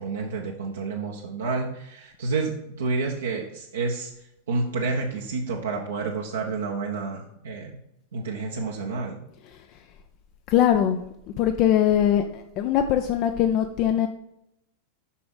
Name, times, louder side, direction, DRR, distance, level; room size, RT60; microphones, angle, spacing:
voice 1, 0.0-4.1 4.5-7.8 8.1-9.2, right 4 dB, 65° right, 0 dB, 1.0 m, -29 dB
voice 2, 10.5-11.0 11.4-14.1, left 10 dB, 40° left, 6 dB, 0.5 m, -21 dB
8.3 x 5.9 x 4.0 m, 0.81 s
figure-of-eight pair, 90°, 0 cm